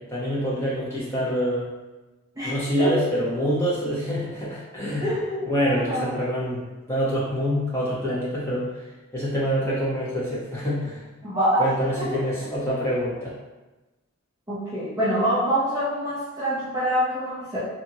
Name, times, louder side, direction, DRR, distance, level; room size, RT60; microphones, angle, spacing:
voice 1, 0.1-1.7 2.4-5.1 5.4-6.6 6.9-8.7 9.1-11.0 11.6-13.3, equal, 10° left, -9 dB, 0.8 m, -26 dB
voice 2, 2.4-2.9 5.0-5.4 5.6-6.2 11.2-11.6 12.0-12.4 14.5-17.6, equal, 15° right, -11 dB, 0.5 m, -26 dB
2.6 x 2.5 x 2.7 m, 1.1 s
head